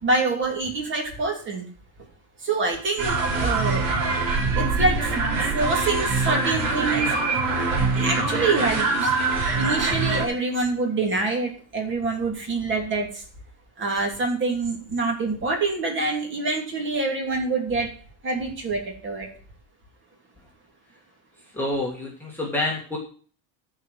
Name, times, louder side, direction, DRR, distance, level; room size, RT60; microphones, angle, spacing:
voice 1, 0.0-1.6 2.4-3.9 4.5-9.1 9.6-13.2 13.8-17.9 18.2-19.3, right 3 dB, 25° right, 2 dB, 2.8 m, -26 dB
sound 1, 3.0-10.3, right 3 dB, 45° right, 3.4 m, -23 dB
voice 2, 21.5-23.0, left 2 dB, 5° left, -3 dB, 1.8 m, -27 dB
12.5 x 4.9 x 7.7 m, 0.42 s
cardioid pair, 160°, 44 cm